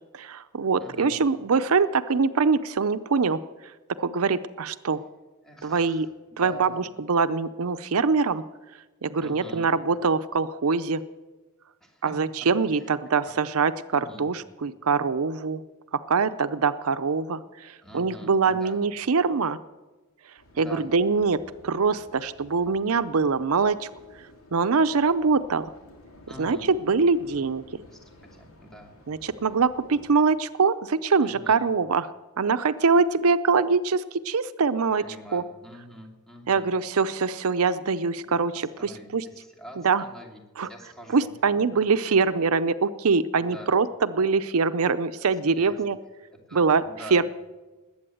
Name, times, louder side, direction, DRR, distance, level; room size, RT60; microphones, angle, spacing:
voice 1, 0.1-3.4 4.0-5.0 5.6-6.1 6.4-8.4 9.0-11.0 12.0-15.6 16.1-19.6 20.6-23.9 24.2-25.7 26.4-27.6 29.1-32.1 32.4-35.0 35.3-35.4 36.5-39.2 39.8-40.0 40.6-40.7 41.1-46.0 46.5-46.8 47.1-47.2, right 4 dB, 80° right, 13 dB, 0.6 m, -23 dB
voice 2, 0.8-1.2 5.4-6.0 6.3-6.9 9.2-9.7 11.8-12.1 12.7-12.9 13.2-13.3 13.9-14.3 17.8-18.8 20.5-20.9 26.3-26.7 27.9-28.9 29.9-30.0 31.2-31.6 35.0-36.7 38.2-38.4 38.8-41.4 42.0-42.2 43.3-43.7 45.3-45.7 46.3-47.2, equal, ahead, 0 dB, 2.8 m, -45 dB
sound 1, 20.4-30.2, left 1 dB, 75° left, 2.9 m, -53 dB
20.0 x 8.7 x 7.8 m, 1.2 s
head